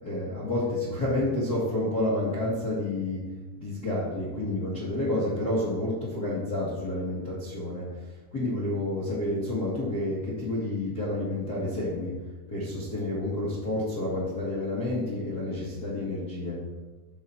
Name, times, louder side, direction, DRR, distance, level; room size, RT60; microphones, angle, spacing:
voice 1, 0.0-3.3 3.6-7.9 8.3-12.2 12.5-16.6, left 1 dB, 60° left, -8 dB, 0.9 m, -29 dB
12.5 x 4.3 x 4.3 m, 1.2 s
omnidirectional pair, 4.8 m